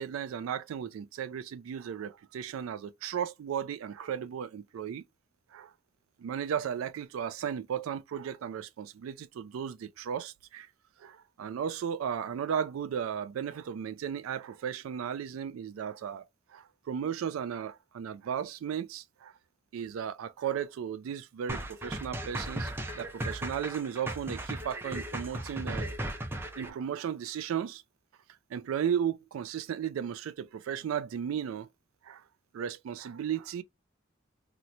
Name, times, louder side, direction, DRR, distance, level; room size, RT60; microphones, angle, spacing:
voice 1, 0.0-5.0 5.5-5.7 6.2-10.7 11.0-16.2 16.5-19.3 19.7-22.7 23.0-26.0 26.6-27.8 28.5-31.7 32.0-32.2 32.5-33.6, right 8 dB, 85° right, 0.3 m, -35 dB
sound 1, 21.5-26.7, right 1 dB, 10° right, 0.4 m, -36 dB
2.9 x 2.1 x 3.9 m
head